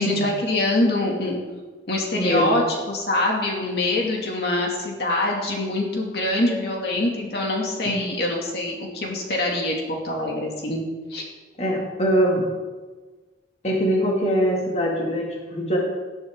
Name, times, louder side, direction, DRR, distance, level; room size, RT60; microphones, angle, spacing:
voice 1, 0.0-1.4 1.9-10.8 11.1-11.2, left 2 dB, 60° left, -1 dB, 2.6 m, -24 dB
voice 2, 2.2-2.6 3.8-3.9 7.8-8.1 11.6-12.4 13.6-15.8, equal, 35° left, -2 dB, 2.5 m, -23 dB
18.0 x 11.5 x 3.9 m, 1.3 s
head